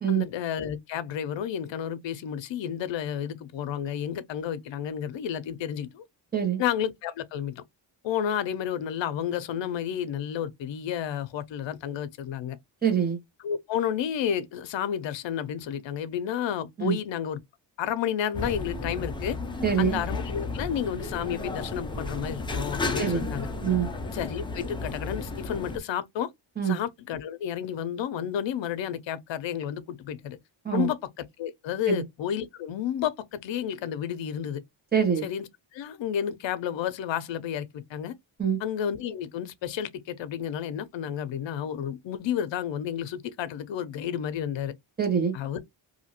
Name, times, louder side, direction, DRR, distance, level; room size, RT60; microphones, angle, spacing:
voice 1, 0.1-6.1 6.6-7.6 8.0-12.6 13.4-17.4 17.8-19.4 19.8-23.5 24.1-26.3 26.6-30.4 30.7-34.6 35.2-38.1 38.6-44.7 45.3-45.6, left 9 dB, 65° left, 0.6 m, -31 dB
voice 2, 12.8-13.2 16.8-17.0 19.6-20.0 23.0-23.3 23.6-23.9 26.6-26.8 30.6-30.9 31.9-32.0 34.9-35.3 38.4-38.6 45.0-45.3, right 8 dB, 20° right, 1.2 m, -24 dB
sound 1, 18.3-25.8, left 3 dB, 10° left, 0.4 m, -33 dB
2.7 x 2.4 x 2.9 m
wide cardioid pair, 165°, 47 cm